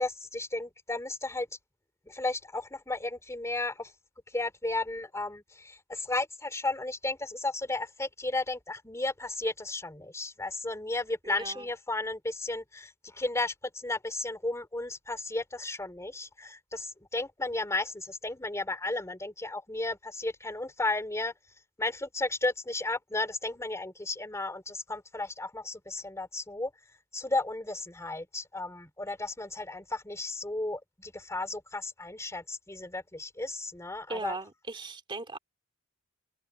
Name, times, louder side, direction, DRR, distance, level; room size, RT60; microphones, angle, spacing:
voice 1, 0.0-1.5 2.1-3.9 4.3-21.3 21.8-26.7 27.1-34.4, left 2 dB, 15° left, 2.9 m, -34 dB
voice 2, 11.3-11.7 34.1-35.4, right 3 dB, 25° right, 2.5 m, -38 dB
head